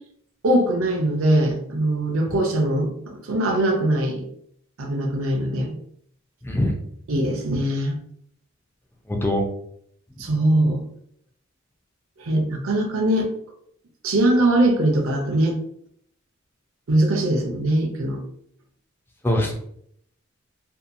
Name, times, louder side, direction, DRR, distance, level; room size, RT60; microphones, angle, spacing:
voice 1, 0.4-4.2 4.8-5.8 7.1-8.0 10.2-10.8 12.2-13.3 14.0-15.6 16.9-18.2, right 1 dB, 75° right, 2 dB, 0.5 m, -21 dB
voice 2, 6.4-6.7 9.1-9.5 19.2-19.6, left 1 dB, 10° left, 1 dB, 0.4 m, -22 dB
2.7 x 2.2 x 2.5 m, 0.69 s
head